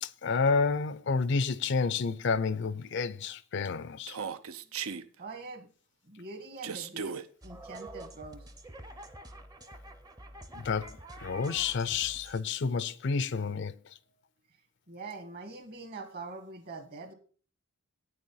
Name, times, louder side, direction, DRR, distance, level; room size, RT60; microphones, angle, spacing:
voice 1, 0.0-4.2 10.5-13.7, left 5 dB, 55° left, 0.4 m, -30 dB
Human voice, 4.1-5.0 6.6-7.2, right 6 dB, 80° right, 0.6 m, -36 dB
voice 2, 5.2-5.7 6.1-8.4 14.9-17.1, right 3 dB, 45° right, 1.6 m, -43 dB
sound 1, 7.4-12.4, right 2 dB, 15° right, 0.6 m, -47 dB
8.8 x 6.6 x 5.5 m
head